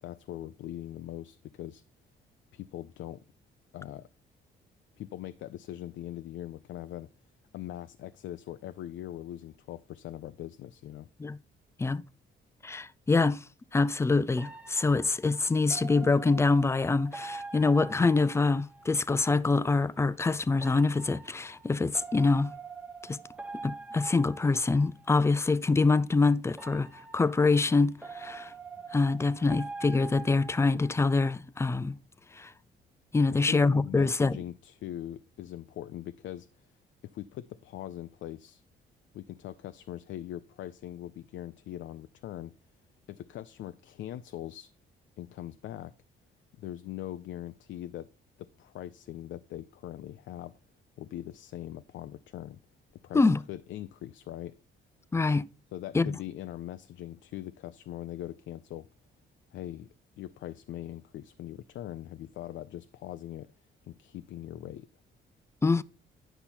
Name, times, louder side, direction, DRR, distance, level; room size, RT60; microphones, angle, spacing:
voice 1, 0.0-1.8 2.5-3.2 3.7-4.1 5.0-7.1 7.5-11.1 33.5-36.7 37.0-38.6 39.1-42.5 43.1-44.7 45.2-45.9 46.6-48.1 48.4-50.6 51.0-52.6 53.0-54.6 55.7-58.9 59.5-59.9 60.2-63.5 63.8-64.9, left 13 dB, 70° left, 0.4 m, -41 dB
voice 2, 12.6-13.4 13.7-22.5 23.1-23.2 23.6-28.5 28.9-32.0 32.4-32.5 33.1-34.4 53.1-53.4 55.1-55.4 55.9-56.1 65.6-65.8, left 3 dB, 15° left, 0.4 m, -25 dB
sound 1, 14.4-19.0 20.6-25.2 26.5-31.1, right 3 dB, 5° right, 0.8 m, -45 dB
10.0 x 5.6 x 4.3 m
cardioid pair, 90°, 20 cm